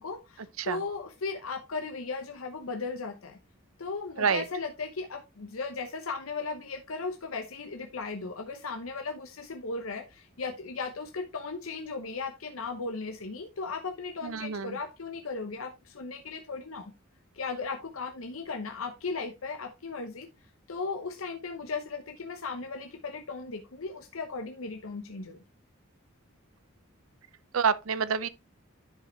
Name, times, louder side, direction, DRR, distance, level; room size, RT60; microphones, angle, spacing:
voice 1, 0.0-3.4 3.8-16.9 17.3-20.3 20.7-25.4, left 4 dB, 90° left, 0.9 m, -36 dB
voice 2, 14.2-14.8 27.5-28.3, right 6 dB, 90° right, 0.6 m, -27 dB
10.5 x 5.1 x 3.2 m
head